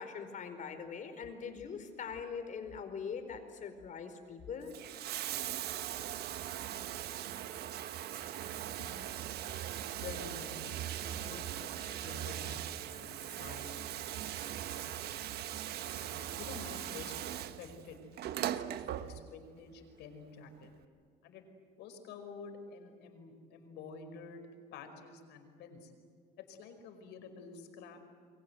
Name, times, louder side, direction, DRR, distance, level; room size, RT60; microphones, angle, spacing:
voice 1, 0.0-4.7, left 6 dB, 50° left, 7 dB, 4.9 m, -42 dB
Bathtub (filling or washing), 4.5-19.5 20.6-20.7, right 11 dB, 70° right, 1.4 m, -40 dB
voice 2, 10.0-10.8 11.1-13.9 14.2-15.3 15.9-17.1 17.6-18.0 18.3-20.7 21.2-21.4 21.8-25.9 26.4-28.0, left 5 dB, 85° left, 6 dB, 5.2 m, -50 dB
29.0 x 23.0 x 8.1 m, 2.2 s
cardioid pair, 110°, 17 cm